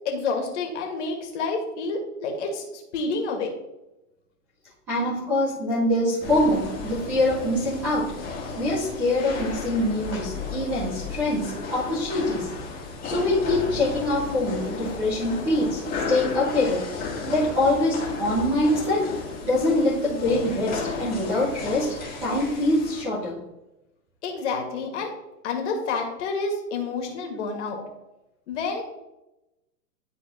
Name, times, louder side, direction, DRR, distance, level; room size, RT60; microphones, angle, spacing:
voice 1, 0.1-3.5 24.2-25.1 25.4-27.8 28.5-28.8, left 4 dB, 45° left, 2 dB, 1.8 m, -29 dB
voice 2, 4.9-8.1 8.6-12.5 13.0-16.8 17.3-19.1 19.5-21.9 22.2-23.4, left 1 dB, 5° right, -8 dB, 0.4 m, -24 dB
sound 1, 6.2-23.0, left 4 dB, 20° left, 1.6 m, -34 dB
11.5 x 4.0 x 2.9 m, 0.95 s
hypercardioid pair, 130°, 48 cm